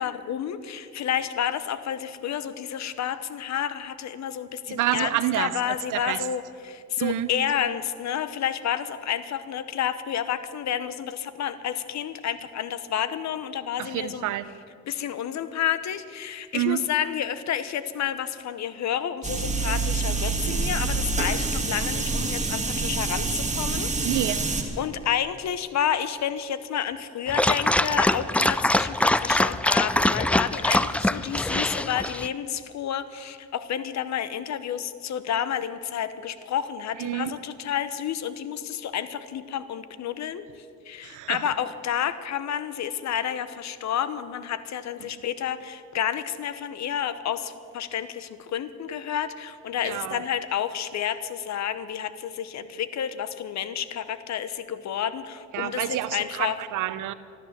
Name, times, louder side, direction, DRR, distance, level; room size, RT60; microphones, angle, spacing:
voice 1, 0.0-5.1 5.4-14.3 14.9-23.9 24.8-40.5 40.9-56.6, left 9 dB, 65° left, 13 dB, 0.9 m, -30 dB
voice 2, 4.7-6.2 7.0-7.3 13.8-14.5 16.5-16.9 24.0-24.4 37.0-37.3 41.0-41.4 45.0-45.1 49.8-50.2 55.5-57.1, right 14 dB, 85° right, 14 dB, 0.8 m, -28 dB
sound 1, 19.2-24.6, right 3 dB, 25° right, 2.2 m, -27 dB
Dog, 27.3-32.3, left 1 dB, 5° left, 0.3 m, -23 dB
13.5 x 13.0 x 7.4 m, 2.4 s
cardioid pair, 90°, 30 cm